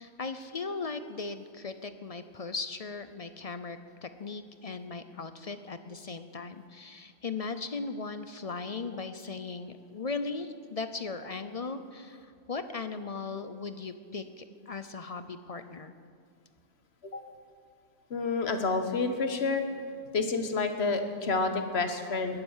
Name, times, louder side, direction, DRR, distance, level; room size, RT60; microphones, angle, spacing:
voice 1, 0.0-15.9, left 4 dB, 40° left, 10 dB, 0.5 m, -38 dB
voice 2, 18.1-19.6 20.1-22.4, left 4 dB, 60° left, 7 dB, 1.4 m, -29 dB
21.0 x 7.9 x 7.2 m, 2.1 s
omnidirectional pair, 1.2 m